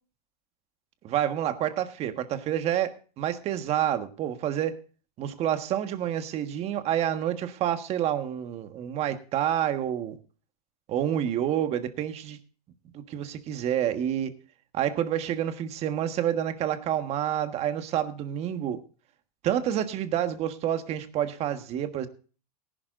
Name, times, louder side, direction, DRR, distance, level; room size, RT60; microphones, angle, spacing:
voice 1, 1.0-4.8 5.2-10.2 10.9-12.4 12.9-14.3 14.7-18.8 19.4-22.1, right 10 dB, 30° right, 8 dB, 1.5 m, -28 dB
19.0 x 11.5 x 2.5 m, 0.37 s
supercardioid pair, 145°, 20 cm